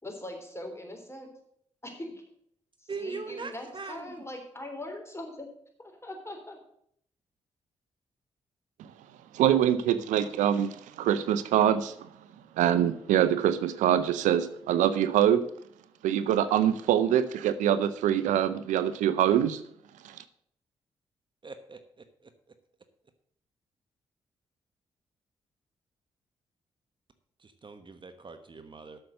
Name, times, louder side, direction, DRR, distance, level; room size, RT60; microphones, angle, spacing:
voice 1, 0.0-1.3 1.8-2.2 2.8-5.5 5.8-6.6, left 1 dB, 20° left, 3 dB, 3.5 m, -41 dB
voice 2, 2.9-4.1 21.4-22.0 27.4-29.0, right 4 dB, 40° right, 8 dB, 1.1 m, -41 dB
voice 3, 9.3-12.1 12.6-15.5 16.0-19.6 20.0-20.2, right 10 dB, 80° right, 13 dB, 0.5 m, -24 dB
8.0 x 6.8 x 7.6 m, 0.69 s
hypercardioid pair, 45°, 13 cm